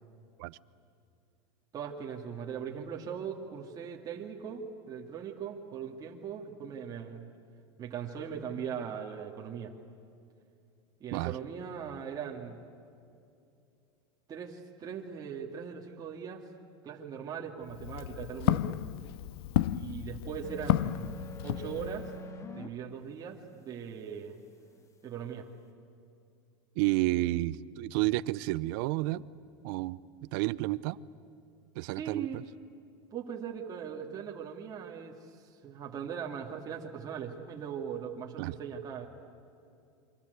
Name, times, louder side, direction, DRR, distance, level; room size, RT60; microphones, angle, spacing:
voice 1, 1.7-7.3 7.8-9.7 11.0-12.6 14.3-16.4 16.8-18.8 19.7-22.1 22.5-24.4 25.0-25.5 31.9-32.4 33.1-35.4 35.6-39.1, right 7 dB, 30° right, 0 dB, 2.4 m, -40 dB
Walk footsteps, 17.6-22.2, left 14 dB, 75° left, 0.7 m, -32 dB
sound 1, 20.4-22.7, left 1 dB, 25° left, 1.8 m, -44 dB
voice 2, 26.8-29.2 29.6-30.0 30.3-31.0 31.7-32.4 38.4-38.5, right 18 dB, 65° right, 19 dB, 0.7 m, -30 dB
28.0 x 24.0 x 8.2 m, 2.5 s
supercardioid pair, 130°, 13 cm